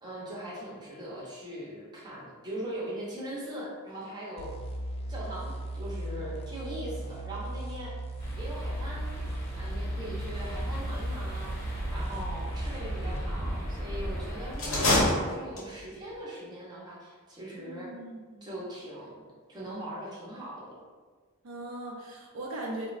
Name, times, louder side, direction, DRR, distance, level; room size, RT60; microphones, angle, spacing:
voice 1, 0.0-4.5 5.1-7.9 8.4-9.1 9.5-17.9 18.4-20.7, right 1 dB, 20° right, -6 dB, 0.6 m, -40 dB
sound 1, 4.4-13.3, right 1 dB, 30° left, 0.3 m, -37 dB
sound 2, 8.2-15.0, equal, 15° left, 0.8 m, -36 dB
sound 3, 14.5-15.9, left 1 dB, 65° left, 0.7 m, -26 dB
voice 2, 17.6-18.5 21.4-22.9, right 1 dB, 70° right, -2 dB, 0.5 m, -39 dB
3.6 x 2.0 x 2.4 m, 1.5 s
head